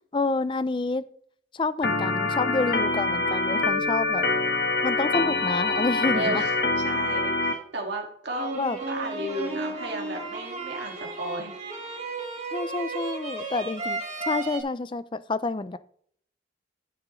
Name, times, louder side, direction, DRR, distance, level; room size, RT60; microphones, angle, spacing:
voice 1, 0.1-1.0 1.5-4.3 4.8-6.4 8.5-8.8 12.5-15.8, left 3 dB, 25° left, 15 dB, 0.4 m, -28 dB
Organ, 1.8-7.5, left 3 dB, 55° left, 1.3 m, -25 dB
voice 2, 6.1-6.6 6.8-8.5 8.9-11.5, right 1 dB, 70° right, 0 dB, 2.1 m, -33 dB
sound 1, 8.3-14.6, right 3 dB, 40° right, 2.0 m, -34 dB
12.5 x 7.6 x 3.1 m, 0.63 s
head